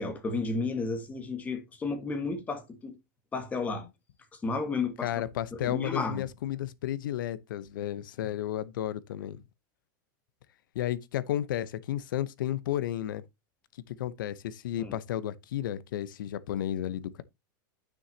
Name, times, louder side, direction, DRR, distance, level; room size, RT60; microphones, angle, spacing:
voice 1, 0.0-3.0 3.3-3.8 4.4-5.1 5.5-6.2 14.8-14.9, left 3 dB, 15° left, 1.6 m, -32 dB
voice 2, 5.0-9.4 10.7-13.2 13.9-17.2, left 12 dB, 85° left, 0.8 m, -33 dB
9.7 x 6.3 x 2.8 m
supercardioid pair, 160°, 11 cm